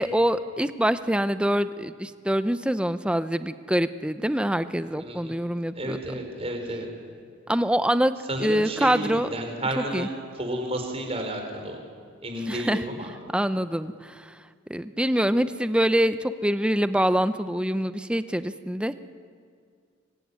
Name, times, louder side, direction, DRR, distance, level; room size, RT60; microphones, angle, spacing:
voice 1, 0.0-6.0 7.5-8.1 8.4-9.3 9.8-10.1 12.5-12.8 13.3-14.3 14.7-19.0, equal, 5° right, 12 dB, 0.7 m, -25 dB
voice 2, 5.0-5.3 5.7-6.9 8.3-11.8 12.2-13.1, right 1 dB, 30° right, 3 dB, 4.6 m, -31 dB
25.5 x 22.5 x 9.7 m, 2.1 s
head